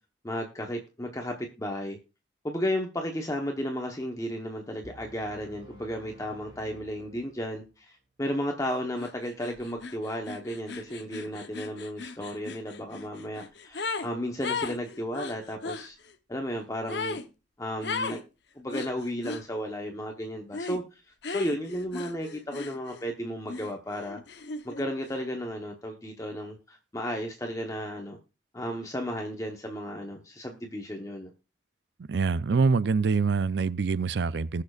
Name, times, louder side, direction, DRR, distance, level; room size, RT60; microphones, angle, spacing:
voice 1, 0.2-2.0 2.4-16.0 16.3-17.2 17.6-18.2 18.5-21.0 21.3-24.2 24.6-28.2 28.5-31.3, equal, 20° left, 1.0 m, -34 dB
sound 1, 4.8-7.8, right 1 dB, 25° right, 2.6 m, -52 dB
sound 2, 9.0-9.1 9.4-14.1 14.4-15.9 16.9-17.3 17.8-18.2 18.7-19.4 20.5-20.8 21.2-23.1 23.5-24.9, left 4 dB, 65° left, 0.9 m, -36 dB
voice 2, 32.1-34.6, right 4 dB, 65° right, 0.5 m, -25 dB
20.0 x 6.6 x 2.4 m
head